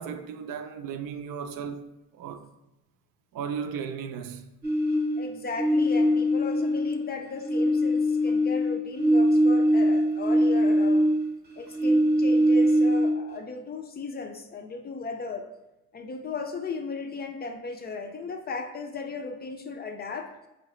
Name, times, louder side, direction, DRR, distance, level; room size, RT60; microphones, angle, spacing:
voice 1, 0.0-1.9 2.1-2.5 3.3-4.5, right 7 dB, 70° right, 0.5 m, -35 dB
sound 1, 4.6-7.1 7.4-11.4 11.7-13.4, equal, 25° right, 0.8 m, -22 dB
voice 2, 5.2-11.1 11.6-15.5 15.9-20.3, left 4 dB, 30° left, 0.4 m, -36 dB
4.9 x 2.8 x 3.0 m
cardioid pair, 105°, 35 cm